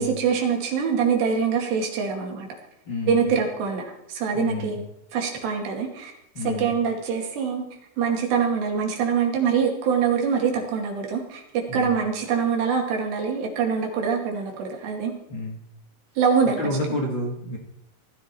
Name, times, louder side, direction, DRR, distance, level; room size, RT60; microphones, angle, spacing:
voice 1, 0.0-2.5 3.1-4.8 5.1-6.1 6.4-7.7 8.0-15.1 16.2-16.6, right 6 dB, 75° right, 1 dB, 4.6 m, -24 dB
voice 2, 2.9-3.3 4.3-4.8 6.3-6.7 11.7-11.9 15.3-15.6 16.6-17.6, left 2 dB, 35° left, -2 dB, 2.3 m, -29 dB
17.5 x 14.0 x 4.6 m, 0.78 s
omnidirectional pair, 4.9 m